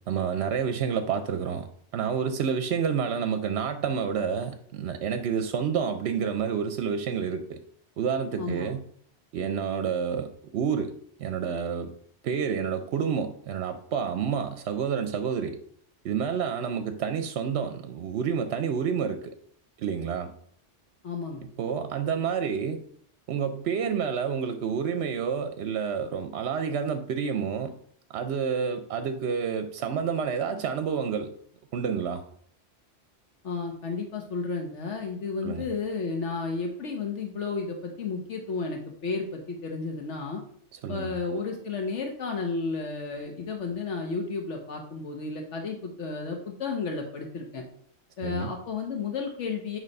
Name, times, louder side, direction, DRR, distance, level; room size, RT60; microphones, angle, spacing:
voice 1, 0.1-1.7 1.9-7.6 8.0-8.8 9.3-10.9 11.2-11.9 12.2-15.6 16.0-19.2 19.8-20.3 21.6-22.8 23.3-27.7 28.1-31.3 31.7-32.2 35.4-35.7 40.7-41.1 48.2-48.5, right 7 dB, 70° right, 8 dB, 0.8 m, -29 dB
voice 2, 8.4-8.7 21.0-21.4 33.4-40.4 40.9-47.6 48.2-49.8, left 4 dB, 70° left, 2 dB, 1.2 m, -32 dB
9.1 x 3.2 x 5.3 m, 0.62 s
omnidirectional pair, 1.3 m